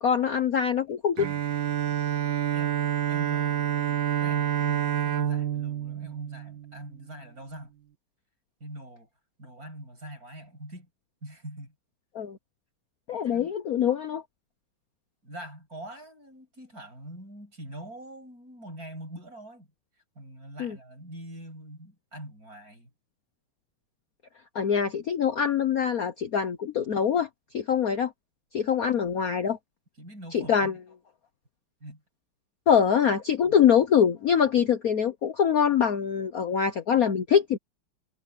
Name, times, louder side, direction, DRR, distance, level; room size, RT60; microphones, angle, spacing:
voice 1, 0.0-1.3 12.1-12.4 13.1-14.2 20.6-20.8 24.5-27.3 27.5-28.1 28.5-29.6 30.3-30.7 32.7-37.6, left 7 dB, 50° left, 1.2 m, -24 dB
Bowed string instrument, 1.2-7.1, right 10 dB, 60° right, 1.7 m, -28 dB
voice 2, 2.5-7.7 8.6-9.1 9.4-10.9 11.2-11.7 13.3-13.5 15.2-19.7 20.1-22.9 29.4-29.5 30.0-30.8 31.8-32.0 33.4-33.7, right 1 dB, 40° right, 8.4 m, -44 dB
omnidirectional pair, 2.4 m